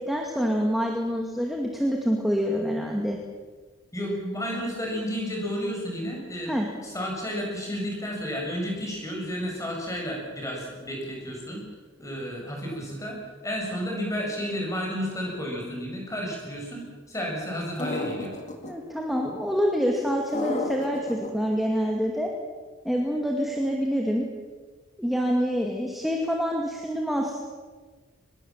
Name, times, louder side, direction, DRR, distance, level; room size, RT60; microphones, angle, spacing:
voice 1, 0.1-3.2 6.5-6.7 18.7-22.3 22.8-24.3 25.0-27.4, equal, ahead, 0 dB, 2.3 m, -26 dB
voice 2, 3.9-6.6 6.8-11.6 12.0-18.3, equal, 15° left, -1 dB, 7.5 m, -32 dB
sound 1, 17.8-18.7 20.3-21.3, left 1 dB, 35° left, 2.4 m, -31 dB
24.5 x 21.5 x 7.5 m, 1.4 s
head